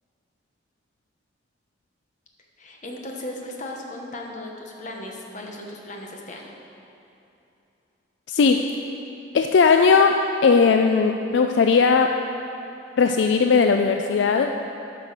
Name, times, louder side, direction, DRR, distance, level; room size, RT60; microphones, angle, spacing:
voice 1, 2.6-6.5, left 1 dB, 40° left, 0 dB, 1.1 m, -36 dB
voice 2, 8.3-8.7 9.3-12.1 13.0-14.6, left 5 dB, 70° left, 5 dB, 0.4 m, -18 dB
10.0 x 5.6 x 6.6 m, 2.8 s
head